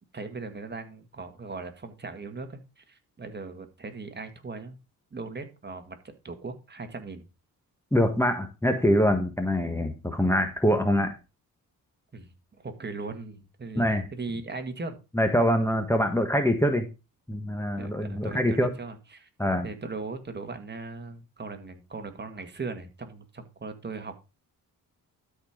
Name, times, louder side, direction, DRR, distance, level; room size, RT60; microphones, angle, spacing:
voice 1, 0.1-4.8 5.1-7.3 12.1-13.8 14.1-15.0 17.8-19.3 19.6-24.2, right 3 dB, 30° right, 6 dB, 1.9 m, -39 dB
voice 2, 7.9-11.2 13.7-14.1 15.1-16.8 17.3-18.7 19.4-19.7, equal, 5° left, 7 dB, 1.4 m, -24 dB
12.5 x 4.6 x 5.1 m, 0.28 s
cardioid pair, 95°, 35 cm